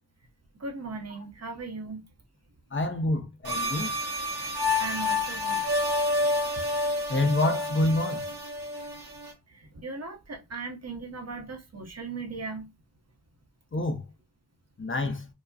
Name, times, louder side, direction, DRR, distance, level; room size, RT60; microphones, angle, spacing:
voice 1, 0.6-2.0 3.8-3.9 4.8-5.6 9.5-12.7, right 3 dB, 45° right, 0.8 m, -38 dB
voice 2, 2.7-3.9 7.1-8.2 13.7-14.0 14.8-15.3, left 2 dB, 35° left, 0.5 m, -27 dB
sound 1, 3.4-9.3, left 2 dB, 85° right, 1.2 m, -29 dB
4.5 x 2.0 x 2.6 m
wide cardioid pair, 85°, 38 cm